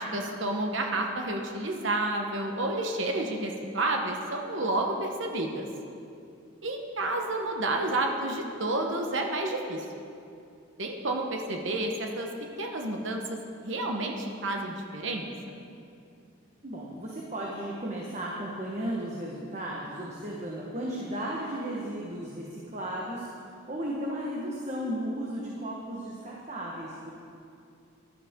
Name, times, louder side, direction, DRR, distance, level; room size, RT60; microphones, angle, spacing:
voice 1, 0.0-5.7 6.6-9.8 10.8-12.3 12.6-13.4 13.6-15.3, right 2 dB, 70° right, 2 dB, 1.0 m, -30 dB
voice 2, 16.6-23.3 23.7-27.1, right 1 dB, 35° right, -3 dB, 1.2 m, -35 dB
15.0 x 12.0 x 3.7 m, 2.6 s
head